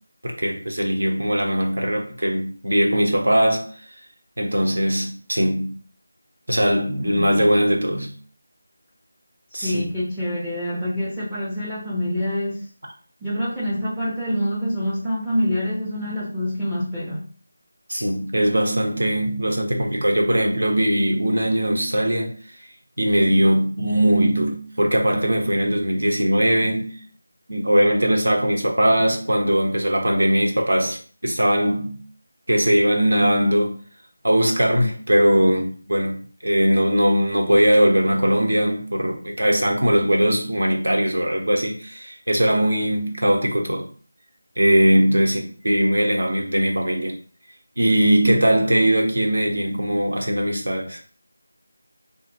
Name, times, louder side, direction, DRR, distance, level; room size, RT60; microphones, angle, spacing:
voice 1, 0.2-3.7 4.4-5.8 6.5-8.1 9.5-9.9 17.9-22.3 23.0-27.0 27.5-31.0 31.2-32.0 32.5-33.8 34.2-43.9 44.6-47.2 47.8-51.0, equal, 70° right, 0.9 m, -20 dB
voice 2, 7.0-7.5 9.6-12.7 13.2-17.3, equal, 5° right, 0.5 m, -26 dB
2.6 x 2.1 x 3.9 m
figure-of-eight pair, 165°, 0 cm